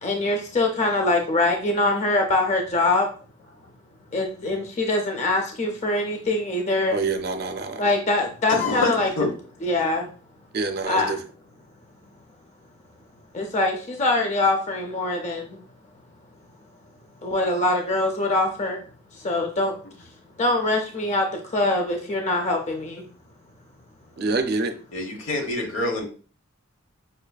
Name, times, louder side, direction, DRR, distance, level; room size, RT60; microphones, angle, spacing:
voice 1, 0.0-3.1 4.1-7.0 7.8-9.1 9.6-10.1 10.9-11.2 13.3-15.6 17.2-18.8 19.1-19.7 20.4-23.0, left 2 dB, 35° left, 2 dB, 0.5 m, -23 dB
voice 2, 6.9-7.8 10.5-11.2 24.2-24.7, right 3 dB, 50° right, 8 dB, 0.5 m, -26 dB
voice 3, 8.5-9.3 24.9-26.1, left 2 dB, 80° left, 2 dB, 1.0 m, -26 dB
5.4 x 2.5 x 2.2 m, 0.39 s
head